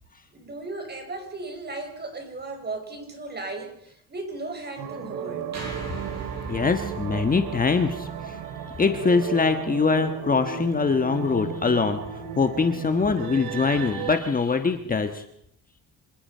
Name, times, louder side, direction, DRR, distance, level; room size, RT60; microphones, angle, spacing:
voice 1, 0.3-5.5, right 2 dB, 30° right, 5 dB, 5.5 m, -36 dB
sound 1, 4.8-14.2, right 8 dB, 90° right, 2.9 m, -35 dB
sound 2, 5.5-9.8, right 5 dB, 45° right, 6.7 m, -39 dB
voice 2, 6.5-8.4 8.8-15.2, left 4 dB, 25° left, 7 dB, 1.4 m, -23 dB
27.0 x 20.0 x 5.6 m, 0.76 s
cardioid pair, 130°, 36 cm